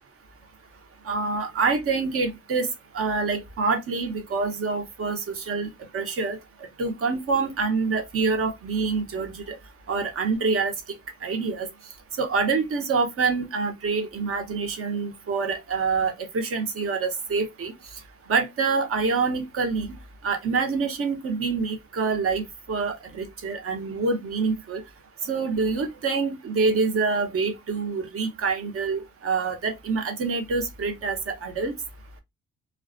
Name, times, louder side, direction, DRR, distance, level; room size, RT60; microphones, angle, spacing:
voice 1, 1.1-2.7 2.9-6.4 6.8-9.6 9.9-10.7 11.2-11.7 12.2-17.7 18.3-19.9 20.2-24.8 25.2-31.7, right 4 dB, 50° right, 0.8 m, -26 dB
2.3 x 2.2 x 2.5 m
cardioid pair, 90°, 30 cm